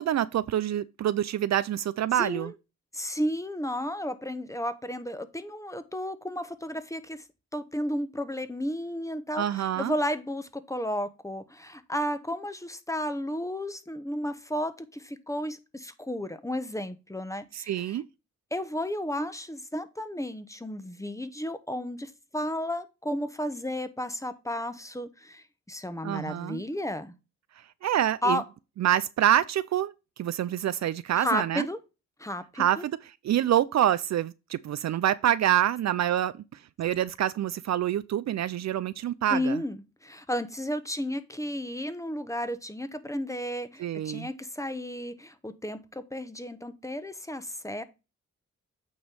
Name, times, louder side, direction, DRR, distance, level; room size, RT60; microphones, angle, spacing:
voice 1, 0.0-2.5 9.4-9.9 17.5-18.0 26.0-26.6 27.8-28.4 28.8-29.9 30.2-31.7 32.6-33.0 33.2-36.3 36.8-39.6 43.8-44.3, right 11 dB, 60° right, 0.4 m, -26 dB
voice 2, 2.1-2.5 2.9-7.2 7.5-18.0 18.5-27.2 28.2-28.4 31.2-31.8 32.2-32.8 39.3-47.8, equal, 10° left, 1.1 m, -33 dB
8.7 x 3.1 x 5.3 m
supercardioid pair, 50°, 31 cm